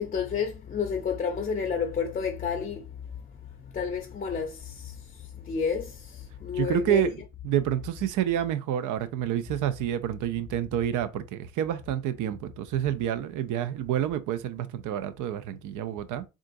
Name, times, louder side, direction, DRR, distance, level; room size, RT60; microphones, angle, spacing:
voice 1, 0.0-2.8 3.7-4.9 5.5-5.9 6.4-7.1, left 6 dB, 30° left, 0.5 m, -30 dB
voice 2, 6.5-16.2, right 11 dB, 85° right, 0.5 m, -28 dB
3.7 x 2.4 x 2.5 m
cardioid pair, 90°, 30 cm